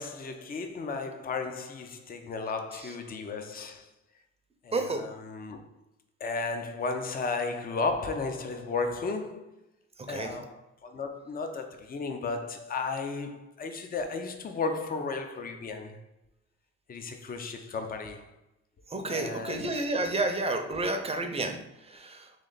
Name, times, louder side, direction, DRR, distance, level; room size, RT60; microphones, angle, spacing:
voice 1, 0.0-3.9 4.6-5.6 6.2-9.5 10.1-16.0 16.9-18.3 19.1-19.7, left 4 dB, 30° left, 0.6 m, -34 dB
voice 2, 4.7-5.0 10.0-10.4 18.9-22.3, right 2 dB, 20° right, 0.7 m, -31 dB
3.3 x 3.3 x 3.9 m
cardioid pair, 90°, 30 cm